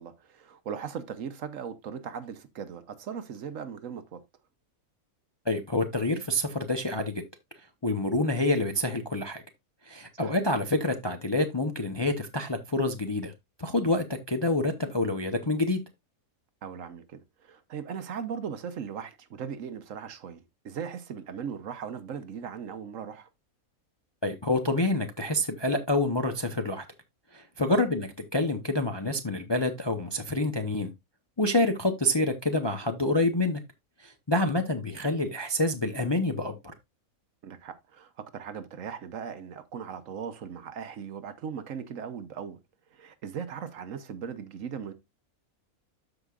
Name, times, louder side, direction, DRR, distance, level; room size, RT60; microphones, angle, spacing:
voice 1, 0.0-4.2 10.2-10.3 16.6-23.3 27.7-27.8 37.4-42.6 42.9-44.9, right 7 dB, 65° right, 1.2 m, -38 dB
voice 2, 5.5-7.2 7.8-9.4 9.9-13.3 13.6-15.8 24.2-26.8 27.3-30.9 31.4-33.6 34.0-36.7, left 2 dB, 25° left, 0.5 m, -27 dB
13.0 x 4.9 x 2.4 m
omnidirectional pair, 1.5 m